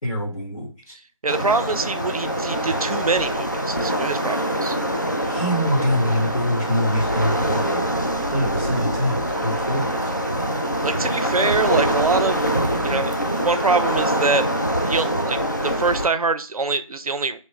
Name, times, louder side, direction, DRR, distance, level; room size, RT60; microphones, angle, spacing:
voice 1, 0.0-0.9 5.2-7.8 8.3-10.1, equal, 70° left, -7 dB, 1.4 m, -24 dB
voice 2, 1.2-4.8 10.8-12.4 12.8-13.1 13.4-17.4, right 4 dB, 90° right, 12 dB, 0.4 m, -24 dB
Waves surf, 1.3-16.1, equal, 35° left, 0.3 m, -24 dB
3.0 x 2.2 x 3.1 m, 0.38 s
figure-of-eight pair, 170°, 18 cm